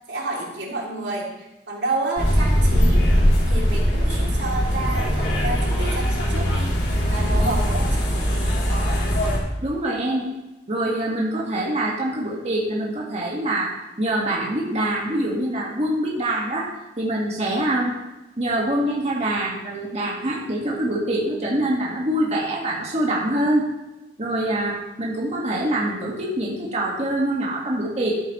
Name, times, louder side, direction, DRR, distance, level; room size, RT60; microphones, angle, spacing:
voice 1, 0.1-3.1 3.5-6.7 7.1-8.4, right 2 dB, 85° right, -3 dB, 2.8 m, -30 dB
sound 1, 2.2-9.4, equal, 85° left, 2.8 m, -20 dB
voice 2, 9.6-10.3 10.7-16.7 17.0-17.9 18.4-23.7 24.2-28.2, right 1 dB, 40° right, -4 dB, 1.7 m, -24 dB
13.0 x 8.2 x 3.1 m, 1.0 s
head